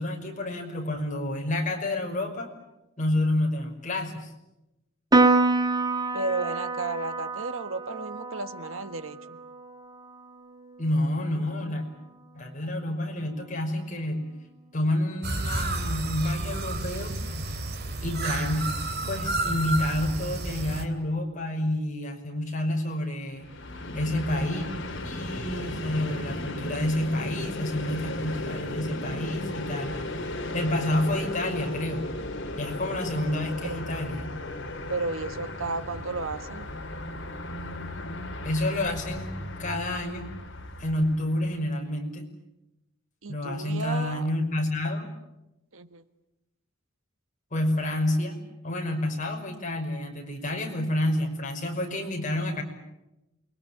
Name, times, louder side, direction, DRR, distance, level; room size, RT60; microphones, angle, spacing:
voice 1, 0.0-2.5 3.0-4.3 10.8-11.8 12.3-14.3 14.7-17.2 18.0-18.6 19.1-23.5 23.9-24.7 25.0-30.0 30.5-32.1 32.6-34.3 38.4-40.2 40.8-42.3 43.3-45.1 47.5-52.6, left 1 dB, 40° left, 2 dB, 5.6 m, -29 dB
Piano, 5.1-11.8, right 3 dB, 20° right, 1.3 m, -27 dB
voice 2, 6.1-9.4 33.6-33.8 34.9-36.7 43.2-44.3 45.7-46.0, right 3 dB, 80° right, 11 dB, 1.5 m, -33 dB
sound 1, 15.2-20.8, right 2 dB, 55° right, 2.9 m, -31 dB
Train, 23.4-41.5, left 1 dB, 60° left, 3.5 m, -36 dB
28.5 x 23.0 x 8.7 m, 0.94 s
head